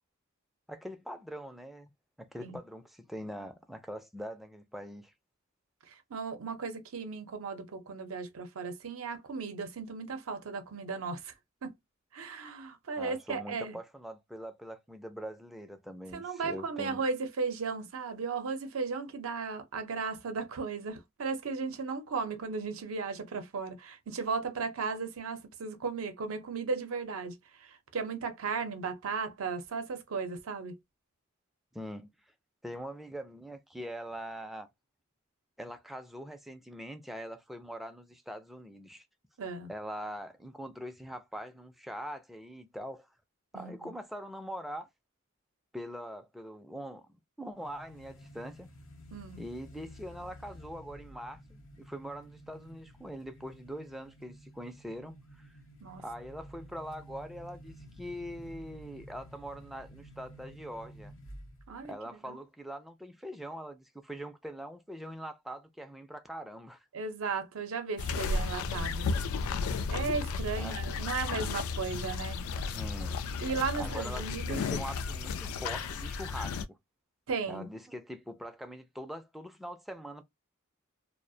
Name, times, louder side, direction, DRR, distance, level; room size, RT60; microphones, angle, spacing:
voice 1, 0.7-1.9 2.2-5.1 13.0-17.0 31.7-32.1 32.6-34.7 35.6-39.0 39.7-43.1 43.5-44.9 45.7-48.7 49.4-55.6 56.0-61.1 61.8-66.9 70.6-70.8 72.7-73.2 73.8-76.8 77.5-80.2, equal, ahead, 0.3 m, -43 dB
voice 2, 5.9-11.3 11.6-11.7 12.1-13.8 16.1-30.8 39.4-39.7 43.5-43.9 49.1-49.4 55.8-56.0 61.7-61.9 62.3-62.4 66.9-69.1 69.9-72.4 73.4-74.6 77.3-77.7, right 4 dB, 75° right, 0.6 m, -36 dB
sound 1, 47.6-61.8, equal, 65° left, 0.7 m, -51 dB
sound 2, 68.0-76.6, left 4 dB, 85° left, 0.3 m, -34 dB
2.3 x 2.1 x 2.5 m
head